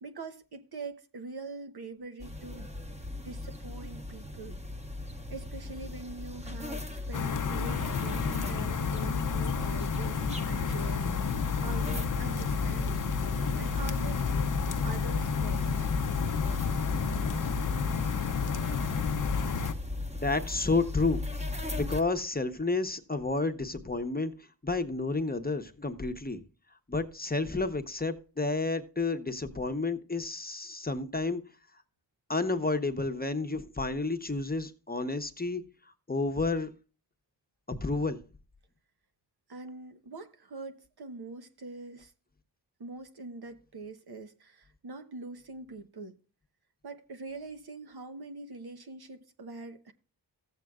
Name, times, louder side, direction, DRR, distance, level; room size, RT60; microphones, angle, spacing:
voice 1, 0.0-2.7 3.2-4.6 5.3-14.6 14.8-15.9 39.5-42.1 42.8-46.2 46.8-49.9, right 3 dB, 65° right, 1.1 m, -44 dB
sound 1, 2.2-22.0, left 2 dB, 15° right, 1.1 m, -36 dB
sound 2, 7.1-19.7, left 6 dB, 50° left, 0.7 m, -31 dB
voice 2, 20.1-21.2 21.8-26.4 26.9-31.4 32.3-35.6 36.1-36.7 37.7-38.2, left 3 dB, 20° left, 0.9 m, -30 dB
14.5 x 7.6 x 2.4 m
cardioid pair, 55°, 41 cm